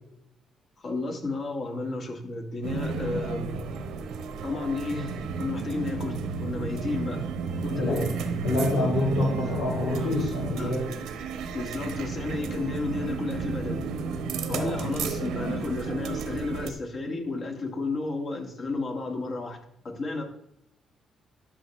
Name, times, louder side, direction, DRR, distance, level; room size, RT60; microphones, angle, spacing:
voice 1, 0.8-3.6 4.4-7.3 7.6-8.2 10.6-10.7 11.5-13.9 14.5-19.6 19.8-20.2, left 3 dB, 50° left, 2 dB, 2.0 m, -32 dB
sound 1, 2.6-16.7, right 4 dB, 85° right, 1.0 m, -32 dB
voice 2, 8.4-11.0 14.5-14.8, left 2 dB, 85° left, -6 dB, 2.8 m, -27 dB
12.5 x 5.8 x 3.3 m, 0.76 s
cardioid pair, 90°, 0 cm